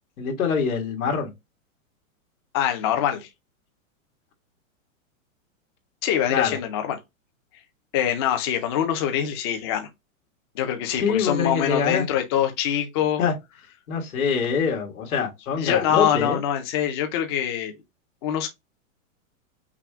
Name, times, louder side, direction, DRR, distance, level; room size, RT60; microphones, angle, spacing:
voice 1, 0.2-1.3 6.3-6.5 10.9-12.1 13.2-13.3 13.9-16.4, left 6 dB, 90° left, 1.9 m, -24 dB
voice 2, 2.5-3.3 6.0-7.0 7.9-9.9 10.5-13.2 15.6-17.7 18.2-18.5, left 10 dB, 20° left, 0.4 m, -24 dB
5.9 x 2.1 x 3.5 m
supercardioid pair, 165°, 42 cm